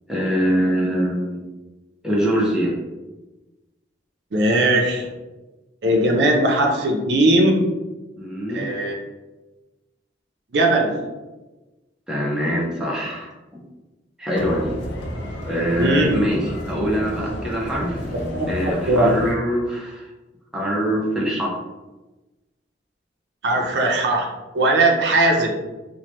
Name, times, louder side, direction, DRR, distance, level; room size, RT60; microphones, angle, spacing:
voice 1, 0.1-1.4 2.0-2.7 8.2-8.6 12.1-13.6 14.2-14.8 15.4-18.1 18.5-20.1 20.5-21.6, equal, 5° right, -4 dB, 0.5 m, -23 dB
voice 2, 4.3-5.1 5.8-7.6 8.5-9.0 10.5-11.0 15.8-16.2 18.3-19.4 23.4-25.5, right 1 dB, 65° right, 1 dB, 0.5 m, -19 dB
sound 1, 14.3-19.3, left 1 dB, 75° left, 0.5 m, -31 dB
3.0 x 2.1 x 2.9 m, 1.1 s
head